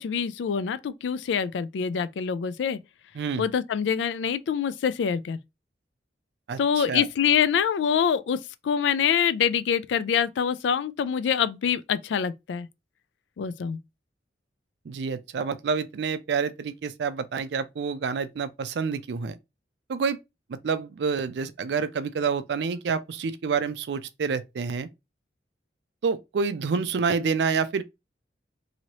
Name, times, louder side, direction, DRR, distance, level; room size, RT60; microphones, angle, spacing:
voice 1, 0.0-2.8 3.4-5.4 6.6-8.4 8.6-12.7 13.4-13.8, left 7 dB, 90° left, 0.3 m, -25 dB
voice 2, 3.1-3.5 6.5-7.0 14.9-19.4 19.9-20.2 20.5-24.9 26.0-27.8, right 5 dB, 70° right, 0.4 m, -28 dB
3.0 x 2.7 x 2.8 m
head